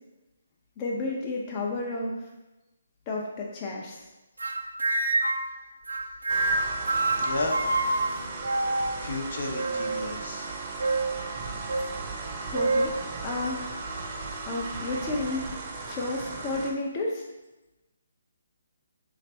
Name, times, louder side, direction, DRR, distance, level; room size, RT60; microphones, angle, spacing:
voice 1, 0.8-2.2 3.1-4.0 11.3-11.4 12.4-13.7 14.5-15.5 15.9-17.2, left 2 dB, 30° left, -2 dB, 0.5 m, -31 dB
sound 1, 4.4-5.5 5.9-9.1 9.5-10.1 10.8-11.2 11.7-11.9 12.5-12.9, right 2 dB, 90° right, 0.4 m, -27 dB
sound 2, 6.3-16.7, right 3 dB, 30° right, 0.6 m, -37 dB
voice 2, 7.2-7.6 9.0-10.5, left 2 dB, 65° left, 1 dB, 0.7 m, -32 dB
3.2 x 2.5 x 4.3 m, 1.0 s
figure-of-eight pair, 145°, 0 cm